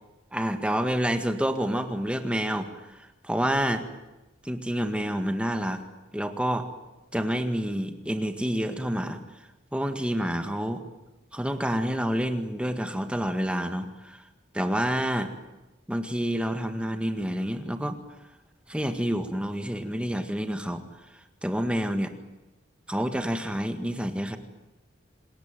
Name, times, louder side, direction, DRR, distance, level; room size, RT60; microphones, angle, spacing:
voice 1, 0.3-3.9 4.4-5.8 6.1-6.7 7.1-9.2 9.7-10.8 11.3-14.2 14.5-15.3 15.9-18.0 18.7-20.8 21.4-22.1 22.9-24.4, equal, 5° right, 7 dB, 1.9 m, -28 dB
27.5 x 20.0 x 9.3 m, 1.0 s
head